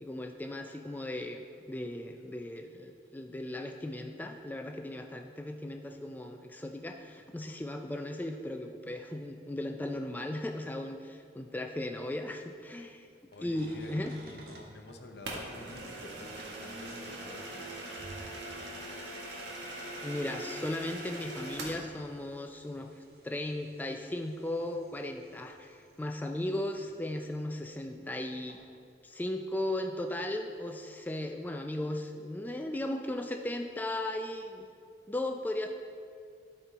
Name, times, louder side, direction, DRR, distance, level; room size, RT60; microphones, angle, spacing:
voice 1, 0.0-13.1 13.4-14.1 20.0-22.9 23.2-28.6 29.0-34.7 35.1-35.7, left 1 dB, 10° left, 5 dB, 0.3 m, -36 dB
voice 2, 13.3-17.7, left 2 dB, 75° left, 5 dB, 0.7 m, -49 dB
sound 1, 13.3-20.6 21.2-28.2 28.5-28.7, right 2 dB, 55° right, 1.0 m, -56 dB
sound 2, 15.2-21.8, right 1 dB, 85° right, 1.6 m, -41 dB
12.5 x 4.4 x 4.0 m, 2.2 s
head